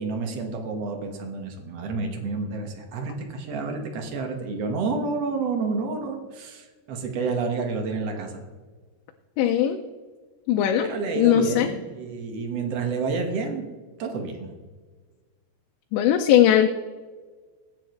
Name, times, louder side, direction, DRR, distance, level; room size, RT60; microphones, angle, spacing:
voice 1, 0.0-8.4 10.8-13.6 14.0-14.5, right 4 dB, 60° right, 3 dB, 1.6 m, -29 dB
voice 2, 9.4-9.8 10.5-10.9 11.2-11.7 15.9-16.7, left 11 dB, 85° left, 3 dB, 2.9 m, -19 dB
21.0 x 9.8 x 3.2 m, 1.4 s
omnidirectional pair, 5.2 m